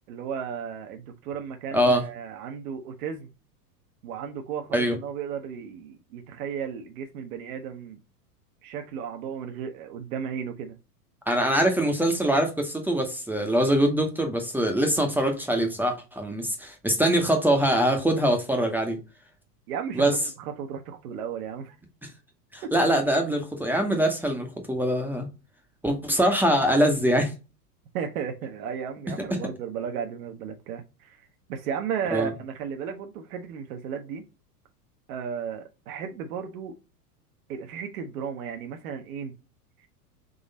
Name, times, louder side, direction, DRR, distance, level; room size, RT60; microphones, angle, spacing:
voice 1, 0.1-3.3 4.0-8.0 8.6-10.7 19.7-21.8 27.9-34.2 35.1-36.7 37.5-39.3, right 7 dB, 65° right, 0.8 m, -34 dB
voice 2, 1.7-2.0 4.7-5.0 11.3-19.0 19.9-20.1 22.5-25.3 25.8-27.3 32.1-32.3, right 1 dB, 5° right, 0.7 m, -23 dB
3.9 x 3.0 x 3.9 m
hypercardioid pair, 105°, 48 cm